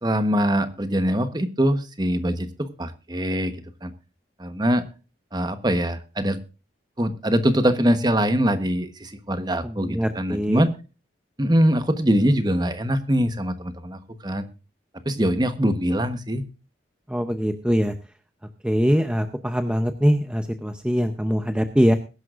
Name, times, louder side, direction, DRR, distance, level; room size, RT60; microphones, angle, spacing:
voice 1, 0.0-3.5 3.8-3.9 4.4-4.9 5.3-6.4 7.0-10.7 11.4-14.5 15.0-16.4, equal, 20° right, 10 dB, 1.1 m, -23 dB
voice 2, 9.6-10.6 17.1-17.9 18.6-21.9, equal, 5° right, 7 dB, 0.7 m, -22 dB
22.0 x 11.0 x 2.5 m, 0.32 s
head